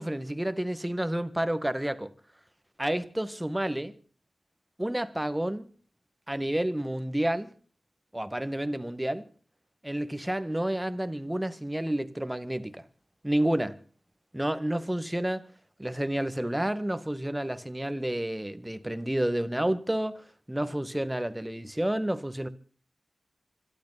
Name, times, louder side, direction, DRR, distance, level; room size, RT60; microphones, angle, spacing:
voice 1, 0.0-2.1 2.8-3.9 4.8-5.7 6.3-7.5 8.1-9.3 9.8-12.8 13.2-13.8 14.3-15.5 15.8-22.5, right 1 dB, 10° right, 1.8 m, -30 dB
26.0 x 12.0 x 4.2 m
cardioid pair, 65°, 0 cm